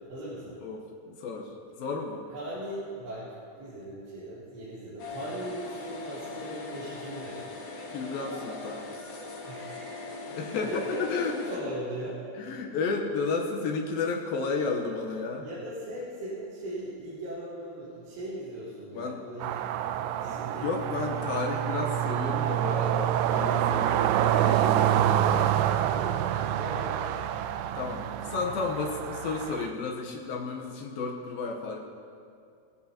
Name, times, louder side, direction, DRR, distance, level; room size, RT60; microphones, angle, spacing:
voice 1, 0.1-0.6 2.3-7.5 9.5-12.2 15.4-19.6 20.2-20.7 25.9-27.0, right 1 dB, 65° right, -14 dB, 6.2 m, -39 dB
voice 2, 0.6-2.3 7.9-8.9 10.3-11.4 12.4-15.5 18.9-19.2 20.5-25.4 27.7-31.9, left 4 dB, 85° left, 0 dB, 2.1 m, -32 dB
sound 1, 5.0-11.6, left 3 dB, 55° left, 2.5 m, -40 dB
sound 2, 19.4-29.7, right 11 dB, 85° right, 3.0 m, -27 dB
19.5 x 15.5 x 2.9 m, 2.4 s
omnidirectional pair, 5.6 m